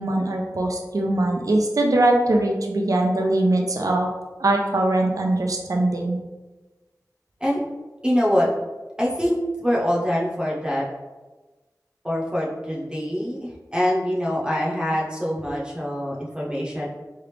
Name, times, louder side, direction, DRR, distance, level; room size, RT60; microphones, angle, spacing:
voice 1, 0.0-4.1 4.4-6.2, right 1 dB, 60° right, 0 dB, 0.4 m, -21 dB
voice 2, 8.0-8.5 9.0-10.8 12.0-16.9, equal, 15° right, -5 dB, 0.8 m, -24 dB
3.2 x 2.4 x 3.3 m, 1.2 s
wide cardioid pair, 55°, 7 cm